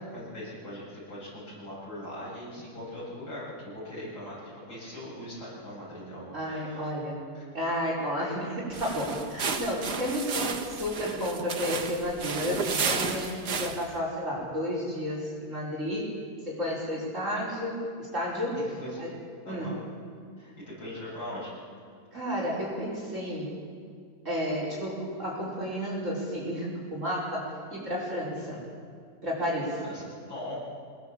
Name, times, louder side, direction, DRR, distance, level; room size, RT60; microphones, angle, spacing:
voice 1, 0.1-7.0 7.3-7.4 10.1-10.2 17.3-17.4 18.8-19.0 19.5-19.8 20.4-21.5 28.4-28.6 29.8-30.6, left 1 dB, 85° left, -8 dB, 8.8 m, -41 dB
voice 2, 6.3-7.2 7.5-16.1 16.5-18.6 19.0-19.1 19.5-19.7 22.1-23.5 24.3-28.6 29.2-29.8, equal, 45° right, -4 dB, 5.4 m, -32 dB
sound 1, 8.7-14.0, right 5 dB, 70° right, 2.1 m, -33 dB
24.5 x 21.0 x 7.5 m, 2.2 s
omnidirectional pair, 1.8 m